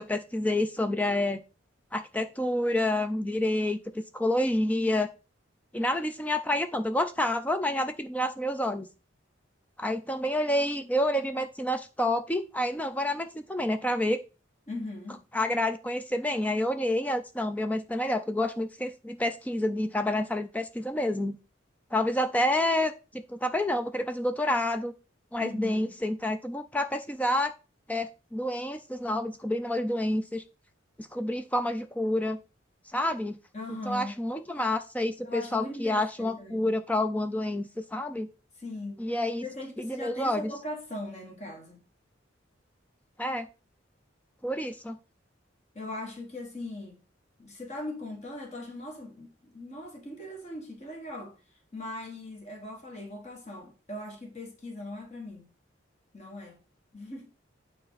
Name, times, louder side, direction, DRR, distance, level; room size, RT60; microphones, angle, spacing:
voice 1, 0.0-1.4 1.9-5.1 5.7-8.9 9.8-14.2 15.3-21.4 21.9-24.9 25.3-27.5 27.9-30.4 31.0-32.4 32.9-33.4 33.9-38.3 39.0-39.5 39.8-40.5 43.2-43.5 44.4-45.0, left 1 dB, 10° left, 0.4 m, -28 dB
voice 2, 14.7-15.2 25.4-25.9 33.5-34.1 35.2-36.7 38.6-39.0 39.4-41.8 45.7-47.0 47.4-51.3 51.7-55.5 56.1-56.6 56.9-57.3, left 2 dB, 35° left, 1.5 m, -39 dB
9.2 x 4.2 x 4.0 m
head